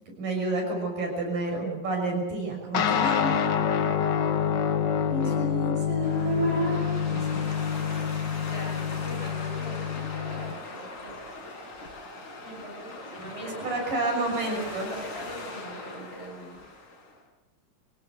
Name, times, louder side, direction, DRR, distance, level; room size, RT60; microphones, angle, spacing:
voice 1, 0.2-3.9 5.1-7.4 13.4-14.9, right 2 dB, 85° right, 1 dB, 7.9 m, -30 dB
sound 1, 2.7-10.5, left 8 dB, 75° left, 1.0 m, -27 dB
voice 2, 5.0-5.4 8.5-11.4 12.4-13.7 14.3-16.7, equal, 15° left, -1 dB, 7.7 m, -42 dB
sound 2, 6.0-17.2, left 2 dB, 60° left, 5.8 m, -40 dB
24.5 x 16.5 x 8.1 m, 1.1 s
omnidirectional pair, 3.8 m